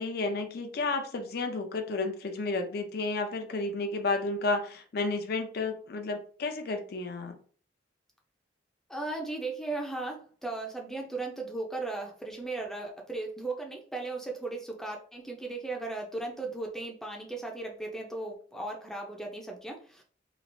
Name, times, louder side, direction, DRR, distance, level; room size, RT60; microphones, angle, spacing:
voice 1, 0.0-7.4, left 3 dB, 60° left, 6 dB, 0.5 m, -32 dB
voice 2, 8.9-20.0, right 2 dB, 5° left, 1 dB, 0.5 m, -36 dB
3.0 x 2.5 x 2.6 m, 0.43 s
head